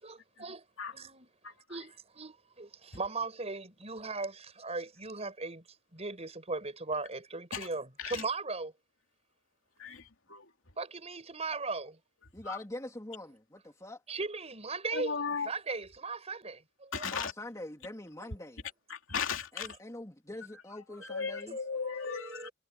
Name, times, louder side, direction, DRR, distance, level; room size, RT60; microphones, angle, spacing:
voice 1, 0.0-1.3 1.7-5.6 5.9-8.7 10.8-12.0 14.1-17.1 21.5-21.6 22.0-22.5, right 3 dB, 30° right, 5.6 m, -38 dB
voice 2, 12.3-14.0 17.0-18.6 19.5-21.6, left 1 dB, 15° left, 3.0 m, -44 dB
voice 3, 14.9-15.5 16.9-17.3 18.9-19.7 21.1-22.5, left 6 dB, 75° left, 2.9 m, -36 dB
head